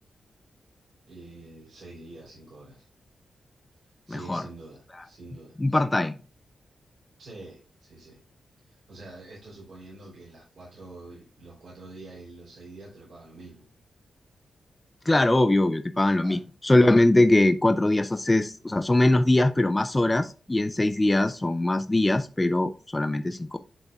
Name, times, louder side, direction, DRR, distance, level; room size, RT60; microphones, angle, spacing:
voice 1, 1.1-2.9 4.1-5.6 7.2-8.2 8.7-13.7 16.2-16.4, right 2 dB, 70° right, -7 dB, 3.2 m, -46 dB
voice 2, 4.1-4.4 5.6-6.1 15.1-23.6, left 2 dB, 15° left, 8 dB, 0.4 m, -22 dB
10.5 x 3.9 x 2.3 m, 0.36 s
wide cardioid pair, 115°, 0 cm